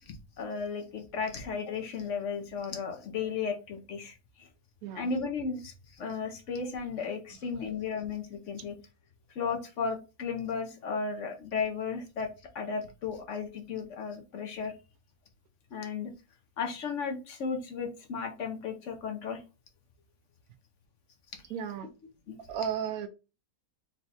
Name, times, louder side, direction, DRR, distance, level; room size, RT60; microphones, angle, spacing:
voice 1, 0.0-4.5 4.9-8.7 9.4-12.3 12.5-14.7 15.7-16.1 16.6-19.4 22.3-22.4, left 5 dB, 60° left, 1.0 m, -35 dB
voice 2, 21.5-21.9 22.5-23.1, right 8 dB, 85° right, 1.1 m, -34 dB
4.0 x 2.3 x 4.1 m
omnidirectional pair, 1.5 m